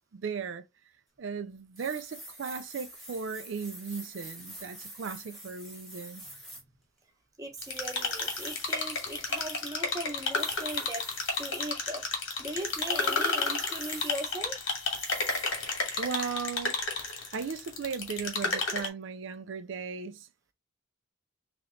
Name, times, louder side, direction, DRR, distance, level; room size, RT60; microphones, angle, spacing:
voice 1, 0.1-0.6 1.2-6.2 16.0-16.8 17.3-20.3, right 5 dB, 75° right, 0.4 m, -36 dB
sound 1, 1.8-6.6 7.6-9.7 10.2-11.7 12.6-14.3 14.7-16.4 17.1-17.2, equal, ahead, 1.1 m, -46 dB
voice 2, 7.4-11.1 11.4-14.6, right 1 dB, 15° right, 0.9 m, -39 dB
sound 2, 7.6-18.9, left 4 dB, 85° left, 1.7 m, -32 dB
3.2 x 2.9 x 3.8 m
head